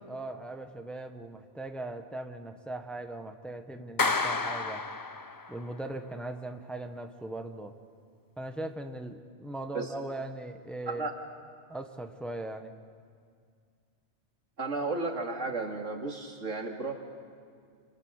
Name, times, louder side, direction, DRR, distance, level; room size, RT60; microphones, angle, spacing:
voice 1, 0.1-4.8 5.5-7.7 8.4-11.1 11.7-12.7, right 2 dB, ahead, 5 dB, 1.2 m, -39 dB
Clapping, 4.0-5.6, left 3 dB, 25° left, 0.5 m, -30 dB
voice 2, 14.6-17.0, right 3 dB, 90° right, 2 dB, 2.8 m, -33 dB
28.5 x 28.0 x 6.5 m, 2.2 s
omnidirectional pair, 1.2 m